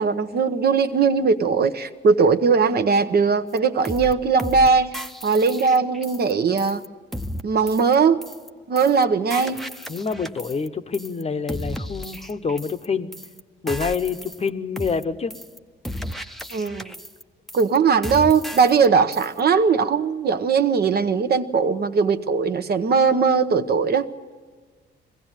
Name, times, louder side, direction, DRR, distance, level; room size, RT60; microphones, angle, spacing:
voice 1, 0.0-4.9 5.2-6.8 7.4-8.2 8.7-9.6 16.5-16.9 17.5-24.1, right 5 dB, 50° right, 0.9 m, -19 dB
sound 1, 3.6-3.7 3.8-4.1 4.4-4.7 4.9-6.3 6.6-6.9 7.1-7.4 7.7-7.9 8.2-8.5 8.8-9.0 9.3-10.7 10.9-11.2 11.5-12.9 13.1-13.4 13.7-14.5 14.8-15.0 15.3-15.6 15.8-17.2 17.5-17.8 18.0-18.9 19.1-19.4, equal, ahead, 0.7 m, -34 dB
voice 2, 9.9-13.1 13.6-15.3, left 5 dB, 30° left, 0.9 m, -27 dB
22.0 x 15.5 x 9.0 m
cardioid pair, 90°, 20 cm